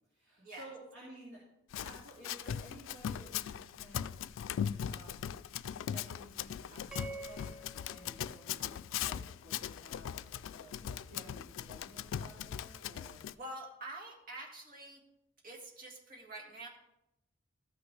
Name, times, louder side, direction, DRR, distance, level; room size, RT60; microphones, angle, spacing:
voice 1, 0.1-1.4 1.8-4.2 4.9-5.3 5.9-13.2, right 1 dB, 70° right, -7 dB, 2.4 m, -54 dB
Run, 1.7-13.3, left 9 dB, 85° left, 0.3 m, -40 dB
sound 1, 6.9-9.3, right 3 dB, 5° right, 0.8 m, -49 dB
voice 2, 13.3-15.0 15.4-16.7, right 1 dB, 50° right, 0 dB, 1.9 m, -46 dB
14.0 x 6.0 x 3.3 m, 0.88 s
head